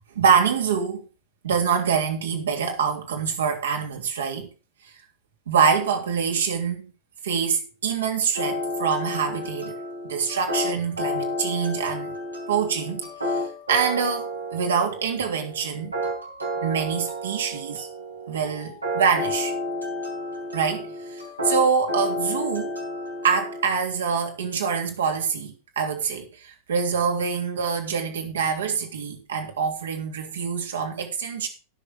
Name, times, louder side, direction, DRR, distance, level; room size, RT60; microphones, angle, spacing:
voice 1, 0.1-1.1 1.4-4.5 5.5-6.8 7.2-9.8 10.0-12.1 12.5-13.4 13.7-15.9 16.6-17.9 18.3-19.5 20.5-22.8 23.2-31.5, right 6 dB, 65° right, 3.2 m, -25 dB
sound 1, 8.3-23.6, left 1 dB, 85° right, 5.0 m, -31 dB
19.0 x 6.9 x 3.8 m
figure-of-eight pair, 90°, 0 cm